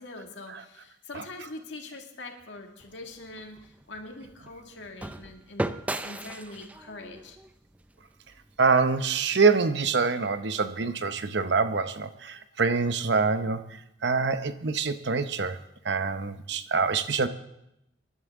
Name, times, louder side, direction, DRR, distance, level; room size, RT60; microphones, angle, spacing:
voice 1, 0.0-7.4, left 2 dB, 75° left, 3 dB, 2.0 m, -43 dB
sound 1, 2.8-8.9, right 1 dB, 10° right, 0.4 m, -38 dB
voice 2, 8.6-13.6 14.0-15.6 15.8-17.3, right 4 dB, 65° right, 11 dB, 0.8 m, -25 dB
25.5 x 11.0 x 3.6 m, 0.83 s
head